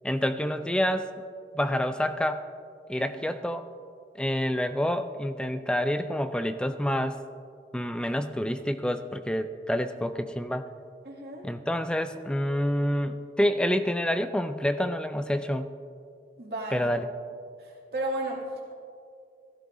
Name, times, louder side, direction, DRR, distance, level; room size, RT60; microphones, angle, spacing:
voice 1, 0.0-1.1 1.5-2.4 2.9-3.7 4.2-7.2 7.7-10.6 11.4-15.7 16.7-17.1, equal, 5° left, 9 dB, 0.4 m, -28 dB
voice 2, 11.0-11.5 16.4-16.9 17.6-18.7, right 1 dB, 60° right, -3 dB, 2.5 m, -34 dB
17.0 x 14.5 x 2.6 m, 2.4 s
head